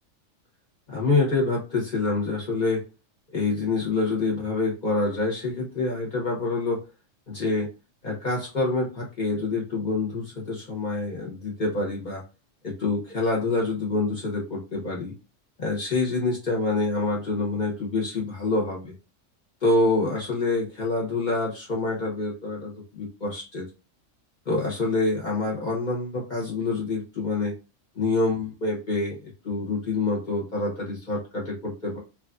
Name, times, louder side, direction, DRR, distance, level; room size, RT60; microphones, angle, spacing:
voice 1, 0.9-2.8 3.3-6.8 7.3-7.7 8.0-12.2 12.6-15.1 15.6-18.9 19.6-23.7 24.5-27.5 27.9-29.2 29.4-32.0, left 3 dB, 40° left, -3 dB, 0.9 m, -26 dB
3.0 x 2.4 x 2.4 m, 0.30 s
omnidirectional pair, 1.3 m